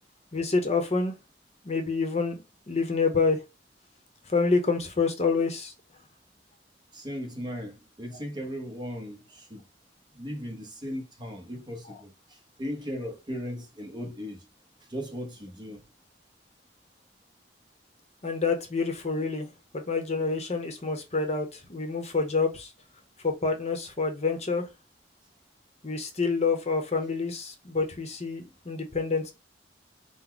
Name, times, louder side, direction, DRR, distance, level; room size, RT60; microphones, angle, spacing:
voice 1, 0.3-1.1 1.6-2.3 2.7-3.4 4.3-5.7 18.2-19.5 19.7-22.7 23.2-24.6 25.8-29.3, left 4 dB, 40° left, 0.9 m, -27 dB
voice 2, 6.9-9.6 10.1-14.4 14.9-15.8, equal, 25° right, 1.0 m, -37 dB
4.1 x 2.2 x 4.4 m
head